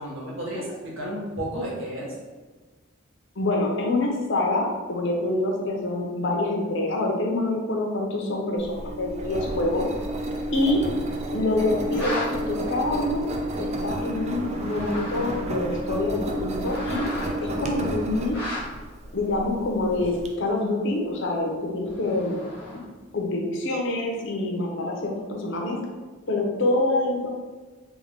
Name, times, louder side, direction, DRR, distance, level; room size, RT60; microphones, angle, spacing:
voice 1, 0.0-2.1, equal, 70° right, -4 dB, 1.1 m, -32 dB
voice 2, 3.4-9.9 10.5-10.8 11.3-13.3 13.6-17.1 17.4-18.4 19.1-22.4 23.1-25.8 26.3-27.3, left 2 dB, 65° left, 0 dB, 0.7 m, -26 dB
Engine, 8.6-20.3, right 1 dB, 35° right, 0.3 m, -31 dB
sound 1, 12.0-12.3 13.4-13.5 14.5-15.6 16.4-17.4 18.3-18.8 20.0-20.4 21.9-23.0, left 1 dB, 10° right, 1.1 m, -35 dB
3.5 x 2.3 x 3.5 m, 1.3 s
head